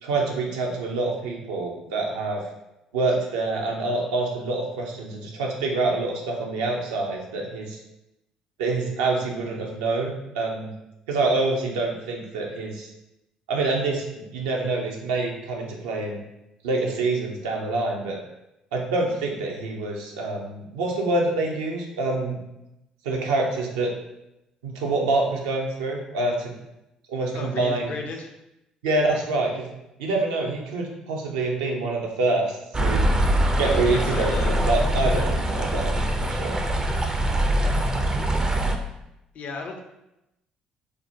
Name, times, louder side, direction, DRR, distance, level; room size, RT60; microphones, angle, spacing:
voice 1, 0.0-2.4 2.9-7.8 8.6-10.7 11.1-12.9 13.5-16.2 16.6-18.2 18.7-22.4 23.0-23.9 24.6-26.5 27.1-27.9 28.8-29.7 30.0-33.1 33.6-36.6, right 2 dB, 70° right, 0 dB, 0.5 m, -26 dB
voice 2, 27.3-28.4 33.6-34.6 39.3-39.8, left 3 dB, 50° left, 3 dB, 0.5 m, -34 dB
sound 1, 32.7-38.8, right 1 dB, 20° right, 0.4 m, -23 dB
3.4 x 2.0 x 2.8 m, 0.89 s
figure-of-eight pair, 50°, 3 cm